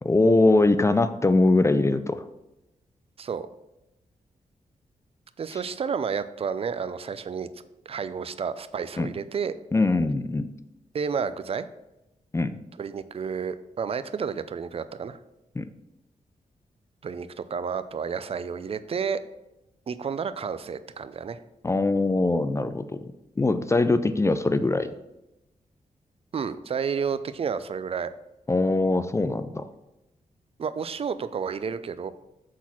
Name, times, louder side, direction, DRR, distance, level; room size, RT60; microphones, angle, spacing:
voice 1, 0.0-2.2 9.0-9.1 9.7-10.5 12.3-12.6 15.6-15.7 21.6-23.1 23.4-24.9 28.5-29.7, left 2 dB, 20° left, 11 dB, 0.4 m, -22 dB
voice 2, 5.4-7.5 7.9-9.6 10.9-11.7 12.8-15.2 17.0-19.2 19.9-21.4 26.3-28.1 30.6-32.1, right 6 dB, 45° right, 13 dB, 0.5 m, -31 dB
6.3 x 4.1 x 5.8 m, 0.94 s
cardioid pair, 95°, 14 cm